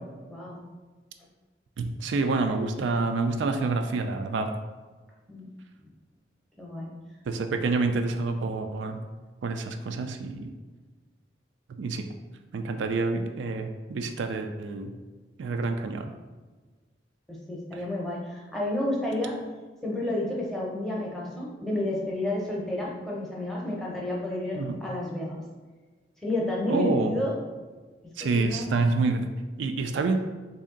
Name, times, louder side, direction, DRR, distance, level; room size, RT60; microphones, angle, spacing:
voice 1, 0.3-0.6 5.3-5.4 6.6-6.9 17.3-19.4 19.8-25.4 26.2-27.3 28.2-28.7, left 1 dB, ahead, -4 dB, 0.7 m, -30 dB
voice 2, 1.8-4.5 7.3-9.0 9.4-10.5 11.7-12.1 12.5-14.9 15.4-16.1 17.7-17.8 24.6-24.8 26.7-27.1 28.2-29.3 29.6-30.2, right 3 dB, 80° right, 6 dB, 0.3 m, -28 dB
3.2 x 2.7 x 3.8 m, 1.3 s
head